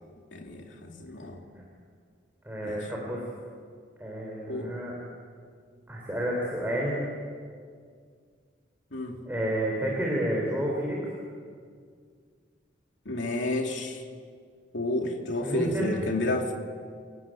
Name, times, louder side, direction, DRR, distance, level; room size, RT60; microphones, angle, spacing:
voice 1, 0.3-1.4 2.6-2.9 4.5-4.7 8.9-9.2 13.1-14.0 14.7-16.5, left 1 dB, 80° left, 2 dB, 2.7 m, -30 dB
voice 2, 2.4-3.3 4.0-4.9 5.9-7.0 9.2-11.0 15.4-16.0, right 1 dB, 10° right, -3 dB, 4.1 m, -30 dB
29.5 x 17.5 x 9.2 m, 2.1 s
head